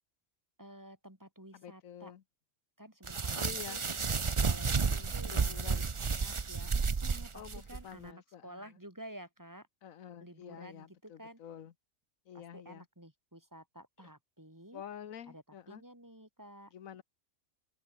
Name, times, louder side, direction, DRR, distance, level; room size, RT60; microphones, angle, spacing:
voice 1, 0.6-2.1 2.8-3.8 4.4-7.4 7.7-9.7 10.2-11.4 12.3-14.8 15.3-16.7, equal, 15° right, 3.6 m, -51 dB
voice 2, 1.5-2.2 3.3-3.8 4.8-5.9 7.3-8.7 9.8-11.7 12.3-12.9 14.7-15.8 16.7-17.0, left 9 dB, 85° left, 1.4 m, -48 dB
sound 1, 3.0-7.8, right 5 dB, 30° right, 0.6 m, -32 dB
omnidirectional pair, 1.4 m